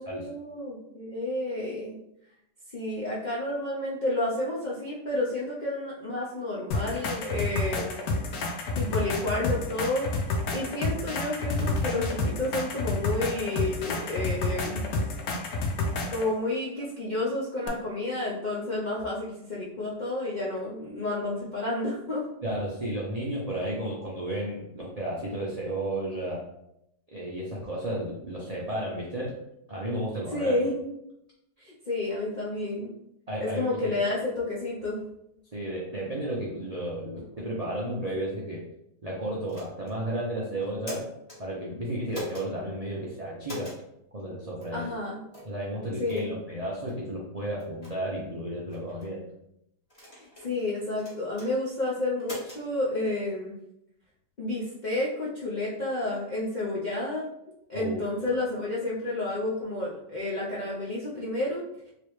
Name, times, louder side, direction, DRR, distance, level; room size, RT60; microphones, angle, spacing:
voice 1, 0.0-2.0 2.7-7.9 8.8-10.1 10.5-14.8 16.1-22.2 30.3-30.9 31.6-32.9 33.4-35.0 44.7-45.2 46.0-46.3 50.2-53.6 54.4-57.3 57.7-61.9, left 2 dB, 60° left, -7 dB, 0.4 m, -30 dB
sound 1, 6.7-16.3 17.7-17.8, left 2 dB, 90° left, 1.2 m, -30 dB
voice 2, 22.4-26.5 27.1-29.3 29.7-30.7 33.3-33.9 35.5-38.6 39.0-41.1 41.4-43.7 44.1-44.9 45.4-49.2 57.7-58.0, right 1 dB, 65° right, -5 dB, 0.3 m, -33 dB
sound 2, 39.5-40.0 40.6-41.4 42.1-42.5 43.4-43.8 44.6-44.7 45.3-45.5 46.1-46.3 46.9-47.0 47.6-47.9 48.7-49.1 49.9-50.5 51.0-51.5 52.2-52.6, left 1 dB, 20° left, 1.3 m, -41 dB
3.2 x 2.9 x 3.1 m, 0.80 s
omnidirectional pair, 1.7 m